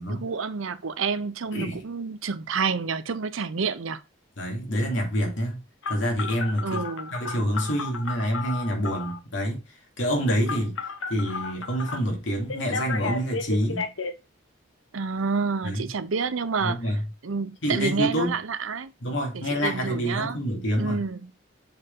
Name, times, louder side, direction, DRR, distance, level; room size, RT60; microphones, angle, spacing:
voice 1, 0.0-4.0 6.6-7.1 14.9-16.8 17.2-18.9 19.3-20.4 20.8-21.3, right 5 dB, 90° right, 0.7 m, -29 dB
voice 2, 1.5-1.8 4.4-6.8 7.1-10.8 11.1-13.9 15.6-15.9 16.6-17.0 17.6-18.4 19.0-21.0, equal, 70° left, 2.6 m, -27 dB
Telephone, 5.8-9.2 10.5-12.0 12.5-14.1, left 4 dB, 85° left, 1.0 m, -33 dB
7.0 x 4.4 x 3.8 m
head